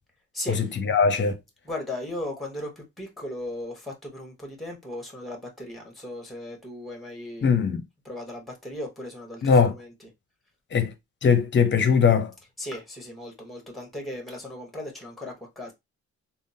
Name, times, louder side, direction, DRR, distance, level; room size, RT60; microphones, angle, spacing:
voice 1, 0.5-1.3 7.4-7.8 9.4-9.7 10.7-10.9 11.2-12.3, left 6 dB, 40° left, 0.6 m, -20 dB
voice 2, 1.6-7.5 8.0-10.1 12.6-15.7, left 1 dB, ahead, 1.1 m, -37 dB
3.5 x 2.0 x 2.6 m
cardioid pair, 90°, 30 cm